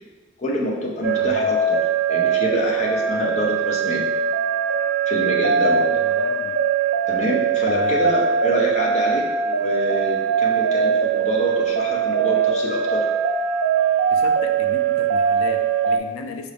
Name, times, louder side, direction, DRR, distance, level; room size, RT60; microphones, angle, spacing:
voice 1, 0.4-1.8 2.1-4.0 5.1-5.9 7.1-13.0, left 1 dB, 35° left, -3 dB, 0.7 m, -26 dB
sound 1, 1.0-16.0, right 6 dB, 70° right, 0.3 m, -21 dB
voice 2, 1.2-1.5 5.7-6.6 7.6-8.1 14.1-16.5, left 4 dB, 85° left, 6 dB, 0.4 m, -36 dB
5.1 x 2.4 x 3.4 m, 1.3 s
head